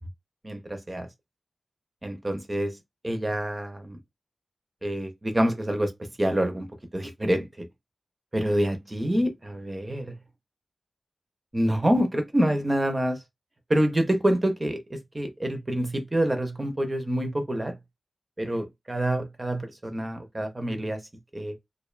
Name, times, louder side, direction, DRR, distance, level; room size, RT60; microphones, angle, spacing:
voice 1, 0.4-1.1 2.0-2.8 3.0-4.0 4.8-5.9 6.2-6.7 6.9-7.7 8.3-10.1 11.5-13.2 13.7-17.8 18.4-21.0 21.3-21.5, right 1 dB, 25° right, 0.5 m, -26 dB
2.4 x 2.1 x 2.4 m
wide cardioid pair, 110°, 0 cm